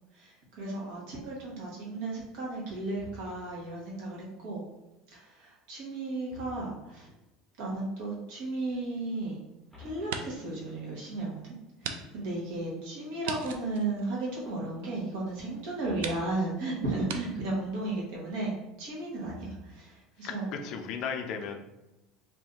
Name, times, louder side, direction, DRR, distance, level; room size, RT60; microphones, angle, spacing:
voice 1, 0.1-4.6 5.1-7.1 7.6-9.4 9.8-11.5 11.8-20.5, right 2 dB, 70° right, -4 dB, 1.2 m, -34 dB
sound 1, 3.0-3.7 6.3-7.1 9.7-10.9 15.8-16.5 19.2-20.0, left 3 dB, ahead, 0.7 m, -50 dB
sound 2, 8.6-9.6 9.9-10.6 11.0-11.1 11.8-12.0 12.3-12.4 13.2-14.8 15.5-15.6 16.0-16.2 17.1-17.2, right 6 dB, 90° right, 0.3 m, -39 dB
voice 2, 20.2-21.6, left 6 dB, 55° left, 5 dB, 0.4 m, -35 dB
2.7 x 2.5 x 3.5 m, 0.97 s
supercardioid pair, 130°, 0 cm